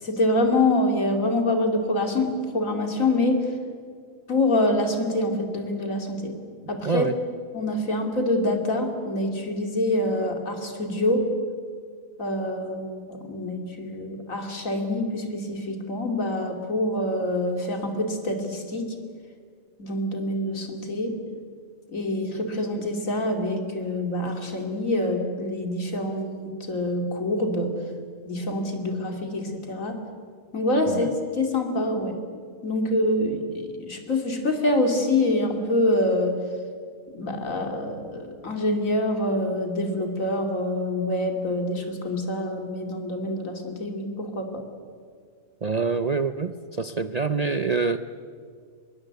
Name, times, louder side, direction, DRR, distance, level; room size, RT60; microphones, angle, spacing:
voice 1, 0.0-3.5 4.3-6.4 6.7-7.1 7.5-11.2 12.2-18.9 19.8-21.2 21.9-27.7 28.2-30.0 30.5-32.2 32.6-36.4 37.1-44.6, left 1 dB, 75° left, 4 dB, 3.2 m, -26 dB
voice 2, 6.8-7.2 30.9-31.1 45.6-48.0, right 4 dB, 40° right, 10 dB, 0.6 m, -26 dB
24.5 x 22.0 x 8.2 m, 2.1 s
omnidirectional pair, 1.4 m